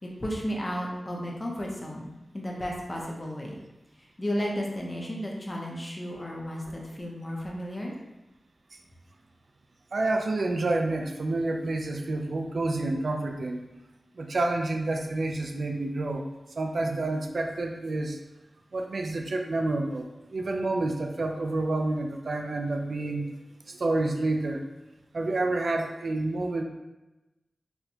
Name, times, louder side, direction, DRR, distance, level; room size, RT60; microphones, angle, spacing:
voice 1, 0.0-2.1 2.3-3.6 4.0-8.0, equal, 25° left, -2 dB, 0.7 m, -33 dB
voice 2, 9.9-13.6 14.2-16.3 16.6-18.2 18.7-23.3 23.7-24.6 25.1-26.6, right 2 dB, 65° right, 3 dB, 0.3 m, -29 dB
4.3 x 2.2 x 2.7 m, 1.0 s
wide cardioid pair, 95°, 0 cm